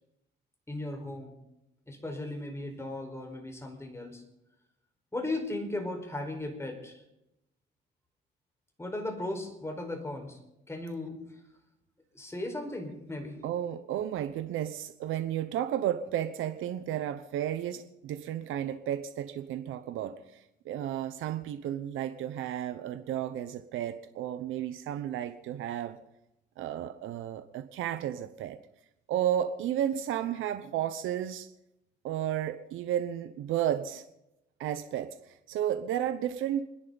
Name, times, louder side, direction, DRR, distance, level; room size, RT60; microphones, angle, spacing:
voice 1, 0.7-1.4 1.9-4.2 5.1-7.0 8.8-10.4 10.7-11.3 12.1-13.4, left 2 dB, 15° left, 3 dB, 4.9 m, -36 dB
voice 2, 13.4-26.0 26.6-28.6 29.1-31.5 32.0-34.0 34.6-36.6, right 11 dB, 85° right, 10 dB, 0.9 m, -33 dB
29.0 x 10.5 x 4.1 m, 0.88 s
cardioid pair, 90°, 20 cm